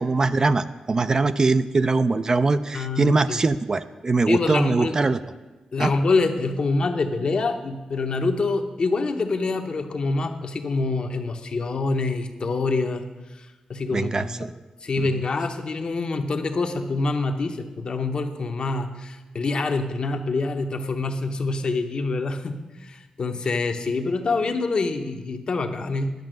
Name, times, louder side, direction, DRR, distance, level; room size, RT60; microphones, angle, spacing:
voice 1, 0.0-5.2 5.8-5.9 13.9-14.5 15.0-15.1, right 3 dB, 30° right, 12 dB, 0.4 m, -22 dB
voice 2, 2.7-3.4 4.3-5.0 5.7-13.1 13.3-14.5 14.8-26.1, left 3 dB, 50° left, 6 dB, 0.9 m, -26 dB
10.5 x 5.9 x 7.7 m, 1.2 s
wide cardioid pair, 115°, 2 cm